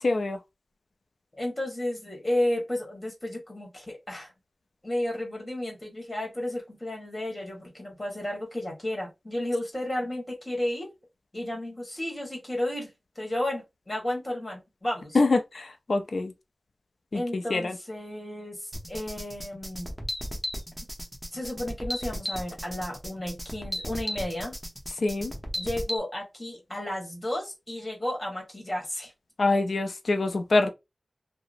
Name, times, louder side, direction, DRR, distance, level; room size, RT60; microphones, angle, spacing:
voice 1, 0.0-0.4 15.1-16.3 17.1-17.8 25.0-25.3 29.4-30.7, left 3 dB, 75° left, 0.4 m, -25 dB
voice 2, 1.3-4.3 4.8-10.9 11.3-12.9 13.1-15.2 17.1-19.9 21.3-24.5 25.6-29.1, left 1 dB, 30° left, 1.4 m, -32 dB
sound 1, 18.7-26.0, equal, ahead, 0.9 m, -35 dB
2.8 x 2.0 x 2.5 m
wide cardioid pair, 60°, 0 cm